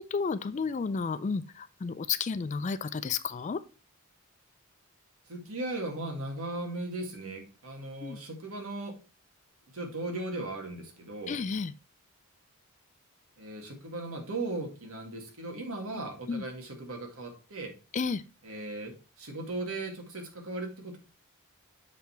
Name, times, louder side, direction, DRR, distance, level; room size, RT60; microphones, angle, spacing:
voice 1, 0.0-3.6 8.0-8.2 11.3-11.7 16.3-16.4 17.9-18.2, left 5 dB, 30° left, 14 dB, 0.3 m, -32 dB
voice 2, 5.3-8.9 9.7-11.4 13.4-17.7 18.4-21.0, right 2 dB, 70° right, 2 dB, 2.0 m, -37 dB
7.3 x 3.9 x 4.4 m, 0.33 s
head